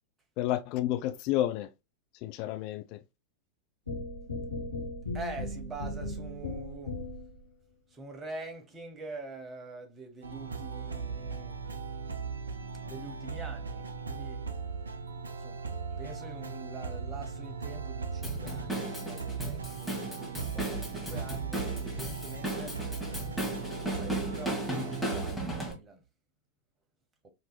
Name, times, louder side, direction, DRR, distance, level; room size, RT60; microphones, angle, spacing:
voice 1, 0.4-1.7 2.2-3.0, left 13 dB, 45° left, 0.3 m, -30 dB
sound 1, 3.9-7.4, left 2 dB, 75° left, 0.9 m, -37 dB
voice 2, 5.1-7.0 7.9-11.6 12.8-14.5 15.4-15.6 16.0-22.7 24.0-26.0, right 3 dB, 20° right, 1.1 m, -45 dB
sound 2, 10.2-25.4, right 5 dB, 75° right, 0.5 m, -38 dB
Drum kit / Drum, 18.2-25.7, right 1 dB, ahead, 1.5 m, -35 dB
5.2 x 3.0 x 2.3 m
figure-of-eight pair, 90°, 0 cm